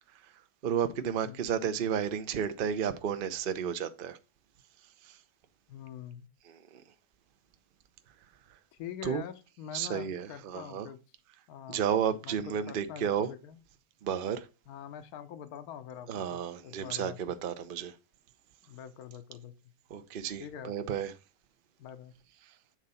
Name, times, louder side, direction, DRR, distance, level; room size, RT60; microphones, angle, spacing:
voice 1, 0.6-4.2 5.0-5.2 6.5-6.8 9.0-9.2 9.7-10.9 11.7-13.3 14.0-14.5 16.1-17.9 19.9-21.1, right 8 dB, 50° right, 0.6 m, -32 dB
voice 2, 5.7-6.3 8.7-11.0 11.5-11.9 12.2-13.6 14.7-17.2 18.6-19.5 20.4-20.7 21.8-22.1, left 9 dB, 70° left, 1.2 m, -44 dB
7.6 x 3.9 x 5.5 m
omnidirectional pair, 1.7 m